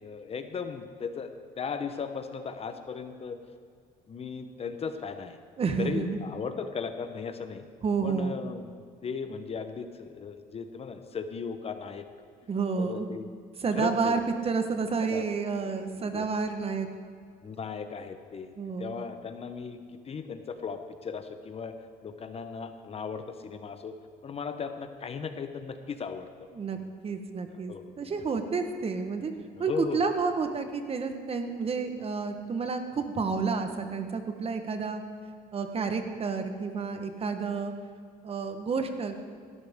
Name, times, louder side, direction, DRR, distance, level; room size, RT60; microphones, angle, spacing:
voice 1, 0.0-1.3 1.6-3.4 4.1-5.4 5.8-7.7 8.0-8.6 9.0-12.0 12.8-13.3 13.7-14.2 15.1-15.8 16.1-16.3 17.4-18.5 18.8-19.8 20.0-21.7 22.0-23.9 24.2-26.3 26.8-26.9 27.7-27.8 29.5-30.1, left 5 dB, 35° left, 8 dB, 0.9 m, -37 dB
voice 2, 5.6-6.2 7.8-8.3 12.5-13.1 13.6-16.9 18.6-18.9 26.5-26.8 27.0-29.3 29.6-35.0 35.5-37.7 38.2-39.1, right 5 dB, 35° right, 7 dB, 1.2 m, -30 dB
17.0 x 12.5 x 3.6 m, 2.2 s
cardioid pair, 110°, 17 cm